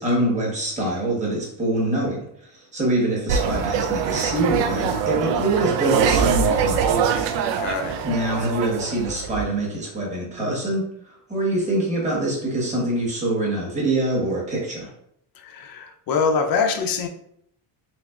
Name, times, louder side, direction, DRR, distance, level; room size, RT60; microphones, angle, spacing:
voice 1, 0.0-7.1 8.0-14.9, right 1 dB, 15° right, 1.2 m, -25 dB
sound 1, 3.3-9.4, right 7 dB, 70° right, 0.5 m, -23 dB
voice 2, 7.6-8.0 15.4-17.1, left 5 dB, 50° left, 0.5 m, -24 dB
5.6 x 2.0 x 2.4 m
cardioid pair, 140°, 45 cm